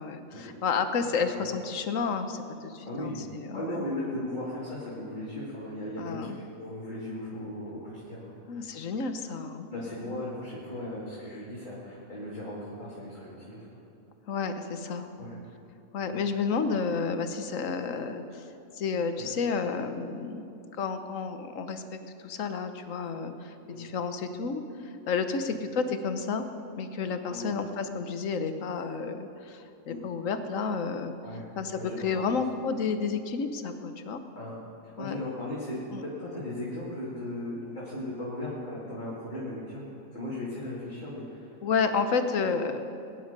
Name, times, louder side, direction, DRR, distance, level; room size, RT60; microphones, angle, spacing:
voice 1, 0.0-3.8 6.0-6.4 8.5-9.7 14.3-15.1 15.9-18.4 18.8-20.4 20.8-24.6 25.1-26.5 26.8-31.1 31.6-34.2 35.0-35.2 35.9-36.0 41.6-42.8, left 5 dB, 70° left, 8 dB, 1.3 m, -31 dB
voice 2, 2.9-3.2 3.5-8.6 9.7-13.7 15.2-15.4 16.1-16.2 19.2-19.3 23.7-23.9 27.3-27.6 29.9-30.1 31.2-31.5 31.7-32.4 34.4-39.8 40.1-41.5, left 1 dB, 35° left, -8 dB, 2.6 m, -37 dB
21.0 x 10.0 x 5.2 m, 2.7 s
omnidirectional pair, 1.4 m